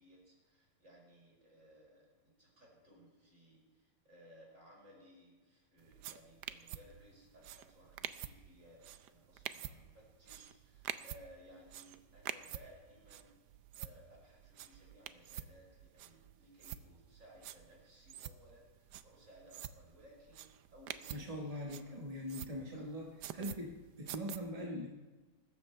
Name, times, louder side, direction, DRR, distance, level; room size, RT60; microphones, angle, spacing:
voice 1, 0.0-13.4 13.8-22.0 22.7-22.9, equal, 45° right, -3 dB, 5.3 m, -61 dB
sound 1, 5.8-24.4, right 11 dB, 75° right, 1.2 m, -48 dB
voice 2, 21.1-23.1 23.3-24.9, equal, 20° right, -1 dB, 1.4 m, -42 dB
22.5 x 13.5 x 3.3 m, 1.2 s
omnidirectional pair, 1.9 m